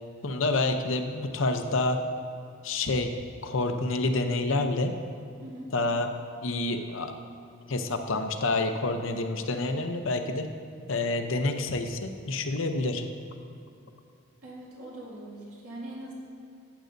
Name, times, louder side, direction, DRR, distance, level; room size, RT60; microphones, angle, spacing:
voice 1, 0.2-2.0 2.6-3.1 3.4-4.9 5.7-6.1 6.4-7.1 7.7-10.5 10.9-13.0, left 2 dB, 65° left, 6 dB, 0.7 m, -28 dB
voice 2, 5.4-5.7 14.4-16.1, right 1 dB, 80° right, -5 dB, 2.3 m, -42 dB
11.5 x 8.9 x 2.6 m, 2.5 s
head